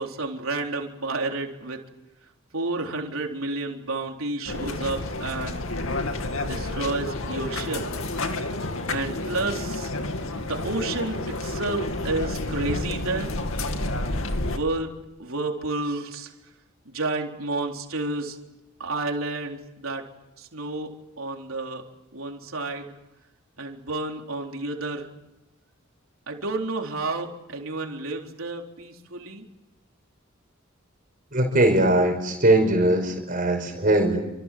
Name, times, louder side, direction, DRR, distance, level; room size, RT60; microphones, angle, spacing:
voice 1, 0.0-1.8 2.5-5.7 6.4-7.8 8.9-9.9 10.3-13.3 14.4-14.9 15.2-16.3 16.9-18.4 18.8-20.0 20.4-21.8 22.1-22.9 23.6-25.1 26.3-29.4, right 2 dB, 85° right, 2 dB, 3.9 m, -30 dB
sound 1, 4.5-14.6, left 2 dB, 80° left, 2.4 m, -30 dB
voice 2, 31.3-34.3, right 1 dB, 40° right, 4 dB, 5.3 m, -20 dB
29.0 x 26.5 x 7.7 m, 1.0 s
head